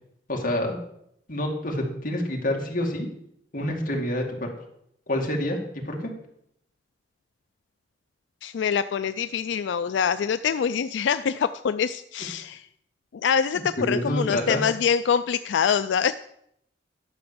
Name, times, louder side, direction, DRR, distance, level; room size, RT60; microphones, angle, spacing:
voice 1, 0.3-0.8 1.3-3.1 3.5-4.5 5.1-5.6 5.9-6.1 13.5-14.6, left 1 dB, 50° left, 0 dB, 2.3 m, -27 dB
voice 2, 8.4-12.6 13.2-16.1, left 7 dB, 85° left, 12 dB, 0.3 m, -25 dB
11.5 x 5.9 x 7.0 m, 0.75 s
head